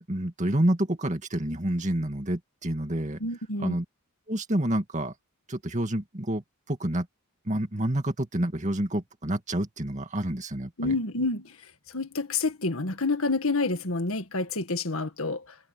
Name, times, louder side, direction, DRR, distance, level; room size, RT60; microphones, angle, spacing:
voice 1, 0.1-3.2 3.6-3.8 4.3-5.1 5.5-6.4 6.7-7.1 7.5-10.9, right 1 dB, 30° right, 2.4 m, -28 dB
voice 2, 3.2-3.8 10.8-11.6 11.9-15.6, left 3 dB, 65° left, 2.0 m, -28 dB
head